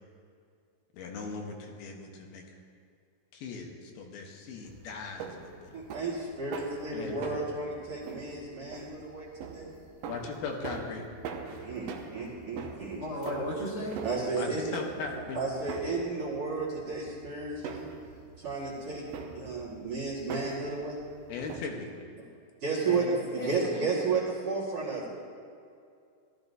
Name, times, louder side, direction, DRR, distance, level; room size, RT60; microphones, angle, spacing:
voice 1, 0.9-2.4 3.3-5.7 6.9-7.5 10.1-11.0 14.3-15.4 21.3-22.1, left 4 dB, 85° left, 2 dB, 3.0 m, -39 dB
sound 1, 4.6-21.6, right 5 dB, 75° right, 2.4 m, -44 dB
voice 2, 5.7-9.3 9.5-9.7 11.6-13.1 14.0-14.6 15.3-17.9 18.4-19.1 19.4-21.0 22.6-23.0 23.3-25.1, right 4 dB, 45° right, -7 dB, 2.4 m, -33 dB
voice 3, 13.0-14.0 22.8-23.7, equal, 50° left, -5 dB, 2.8 m, -35 dB
17.0 x 12.5 x 2.7 m, 2.4 s
omnidirectional pair, 4.3 m